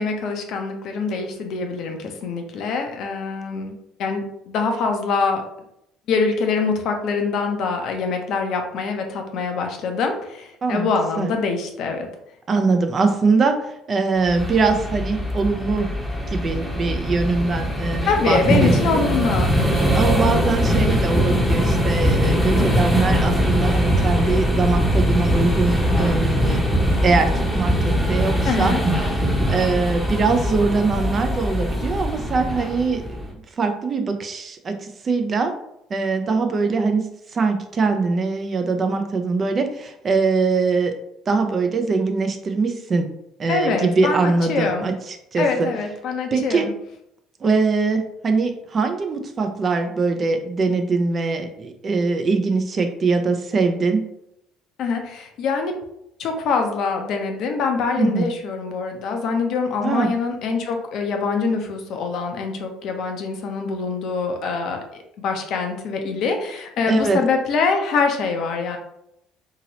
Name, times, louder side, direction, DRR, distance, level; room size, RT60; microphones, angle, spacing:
voice 1, 0.0-3.7 4.0-5.4 6.1-12.1 18.1-19.5 28.5-28.8 43.5-44.9 45.4-46.7 54.8-55.7 56.2-68.8, left 4 dB, 60° left, 4 dB, 0.5 m, -24 dB
voice 2, 12.5-15.9 16.3-19.0 19.9-26.6 27.0-28.7 29.1-29.2 29.5-35.5 35.9-40.9 41.3-43.1 43.4-45.7 46.3-46.7 47.4-54.1 58.0-58.3 59.8-60.1 66.9-67.2, right 4 dB, 40° right, 6 dB, 0.5 m, -22 dB
sound 1, 14.3-33.3, equal, ahead, 0.9 m, -21 dB
2.9 x 2.8 x 2.8 m, 0.78 s
hypercardioid pair, 60°, 0 cm